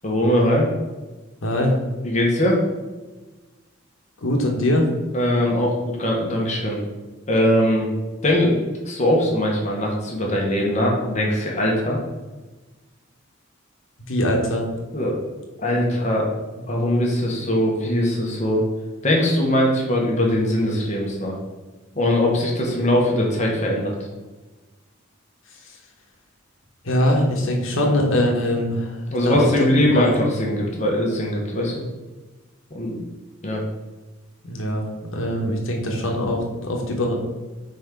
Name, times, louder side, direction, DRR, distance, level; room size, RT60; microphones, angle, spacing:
voice 1, 0.0-0.7 2.0-2.6 5.1-6.8 7.3-7.9 8.2-8.6 8.8-12.0 14.9-15.2 15.6-16.3 16.7-18.6 19.0-21.3 21.9-24.0 29.1-31.8 32.7-33.0 33.4-33.6 35.3-35.4, left 1 dB, 35° left, -2 dB, 1.3 m, -21 dB
voice 2, 1.4-1.7 4.2-4.9 14.1-14.6 25.6-25.8 26.8-30.1 34.4-34.9 35.1-37.2, left 1 dB, 70° left, 0 dB, 1.2 m, -22 dB
4.7 x 4.2 x 5.3 m, 1.2 s
head